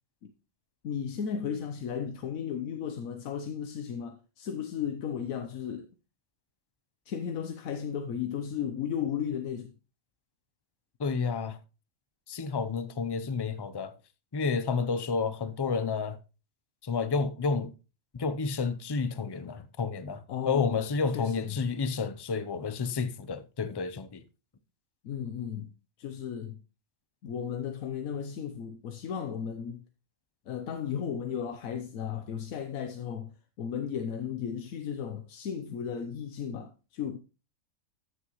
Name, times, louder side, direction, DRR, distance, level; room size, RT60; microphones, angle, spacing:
voice 1, 0.8-5.9 7.1-9.7 20.3-20.8 21.1-21.6 25.0-25.7 26.0-26.6 27.2-29.8 30.5-33.3 33.6-37.2, left 8 dB, 85° left, 1.2 m, -35 dB
voice 2, 11.0-11.6 12.3-13.9 14.3-16.2 16.8-17.7 18.1-24.2, left 5 dB, 30° left, 0.4 m, -30 dB
14.0 x 6.3 x 3.0 m
omnidirectional pair, 1.4 m